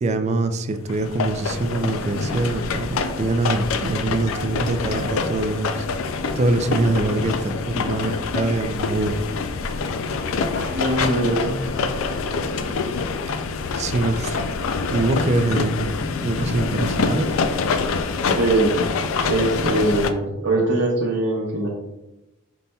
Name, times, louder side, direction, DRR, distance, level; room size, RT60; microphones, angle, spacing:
voice 1, 0.0-5.9 6.4-9.2 13.7-14.4 14.9-17.3, right 2 dB, 30° right, 9 dB, 0.3 m, -24 dB
sound 1, 0.9-20.1, left 4 dB, 70° left, 0.4 m, -26 dB
voice 2, 10.5-11.6 18.3-18.7 19.2-21.7, right 2 dB, 70° right, -5 dB, 0.8 m, -22 dB
5.3 x 4.1 x 2.3 m, 0.97 s
head